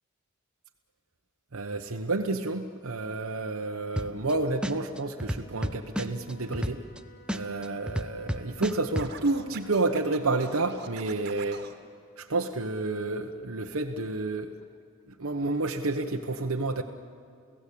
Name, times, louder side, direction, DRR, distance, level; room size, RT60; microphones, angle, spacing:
voice 1, 1.5-6.8 7.3-11.6 12.2-14.6 15.2-16.8, right 2 dB, 70° right, 3 dB, 1.1 m, -30 dB
sound 1, 4.0-4.3 4.6-7.0 7.3-9.1, equal, 5° right, 0.7 m, -31 dB
Wind instrument woodwind instrument, 4.2-11.4, left 2 dB, 40° left, 7.4 m, -56 dB
Scratching (performance technique), 9.0-11.8, right 5 dB, 50° right, 1.8 m, -44 dB
29.5 x 16.5 x 8.5 m, 2.5 s
head